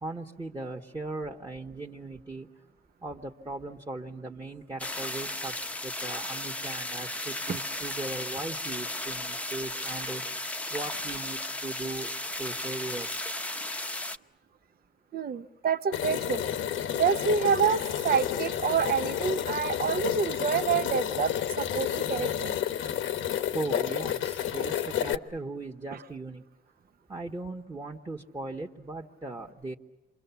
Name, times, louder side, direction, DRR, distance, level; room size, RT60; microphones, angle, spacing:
voice 1, 0.0-2.5 3.0-5.5 5.8-10.2 10.7-12.1 12.4-13.1 23.5-26.4 27.1-29.7, right 2 dB, 20° right, -2 dB, 1.6 m, -38 dB
sound 1, 4.8-14.2, left 1 dB, 5° left, 0.9 m, -35 dB
voice 2, 15.1-16.4 16.9-22.6, right 7 dB, 50° right, 10 dB, 1.0 m, -27 dB
sound 2, 15.9-25.1, left 10 dB, 85° left, 1.2 m, -30 dB
28.0 x 24.0 x 7.2 m, 1.1 s
cardioid pair, 90°, 20 cm